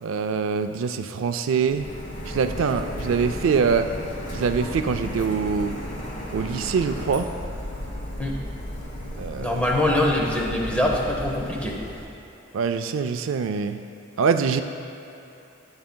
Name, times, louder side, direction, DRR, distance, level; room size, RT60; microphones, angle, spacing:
voice 1, 0.0-1.9 2.3-3.9 4.3-5.7 6.3-7.3 9.2-9.6 12.5-13.8 14.2-14.6, right 6 dB, 75° right, 8 dB, 0.4 m, -24 dB
Printer, 1.7-12.0, equal, 35° left, 1.0 m, -34 dB
voice 2, 9.4-11.8, left 1 dB, 5° left, -1 dB, 0.8 m, -23 dB
13.0 x 8.7 x 2.2 m, 2.9 s
head